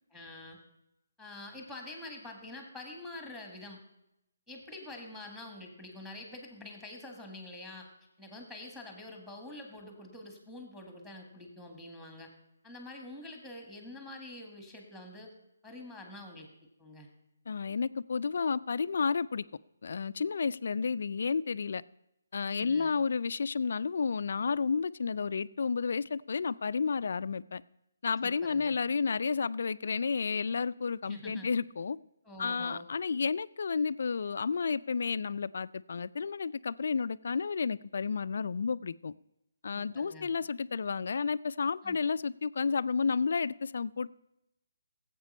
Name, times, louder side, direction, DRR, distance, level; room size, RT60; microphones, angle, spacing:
voice 1, 0.1-0.6 1.2-3.8 4.5-7.9 8.2-12.3 12.6-15.3 15.6-16.5 16.8-17.1 22.5-23.0 28.2-28.8 31.1-31.5 32.2-32.9 39.7-40.3 41.8-42.0, left 2 dB, ahead, 3 dB, 1.8 m, -46 dB
voice 2, 17.5-19.4 19.8-21.8 22.3-27.6 28.0-32.0 32.4-39.1 39.6-44.1, left 5 dB, 55° left, 17 dB, 0.4 m, -31 dB
17.0 x 8.1 x 5.4 m, 0.86 s
hypercardioid pair, 170°, 0 cm